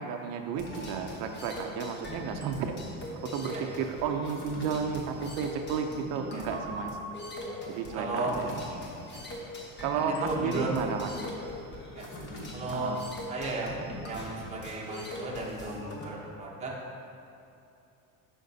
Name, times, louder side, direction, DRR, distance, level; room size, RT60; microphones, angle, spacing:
voice 1, 0.0-2.8 3.2-7.0 7.7-8.5 9.8-11.1 12.7-13.0, right 6 dB, 75° right, 4 dB, 0.6 m, -32 dB
sound 1, 0.6-16.1, left 1 dB, 30° left, 1.0 m, -41 dB
voice 2, 7.9-8.3 9.1-9.2 10.0-10.7 11.9-12.0 12.5-13.0 13.3-13.7 14.0-16.7, right 2 dB, 20° right, -3 dB, 0.9 m, -35 dB
9.0 x 5.8 x 2.7 m, 2.8 s
cardioid pair, 155°, 36 cm